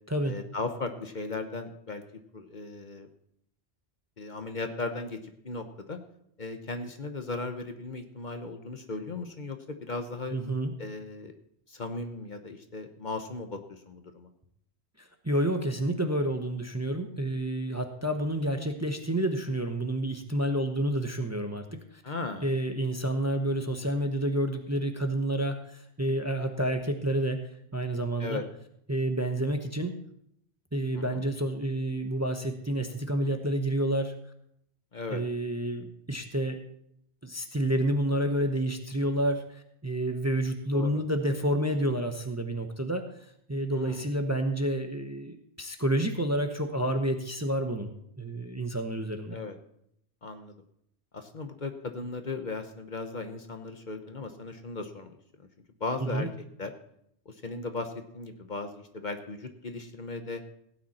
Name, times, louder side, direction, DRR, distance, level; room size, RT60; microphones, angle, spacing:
voice 1, 0.2-2.0 2.3-3.1 4.2-5.2 5.4-6.0 6.4-10.4 10.8-11.4 11.7-14.3 22.0-22.5 28.2-28.4 30.9-31.2 34.9-35.2 40.7-40.9 43.7-44.0 49.3-49.6 50.2-50.5 51.1-55.1 55.4-55.5 55.8-56.3 56.6-56.7 57.3-60.4, left 3 dB, 45° left, 6 dB, 1.1 m, -37 dB
voice 2, 10.3-10.7 15.0-21.8 22.4-28.4 28.9-30.0 30.7-34.1 35.1-36.6 37.2-43.1 43.5-49.4 56.0-56.3, right 1 dB, 15° right, 6 dB, 0.9 m, -29 dB
16.5 x 9.3 x 4.3 m, 0.73 s
omnidirectional pair, 1.1 m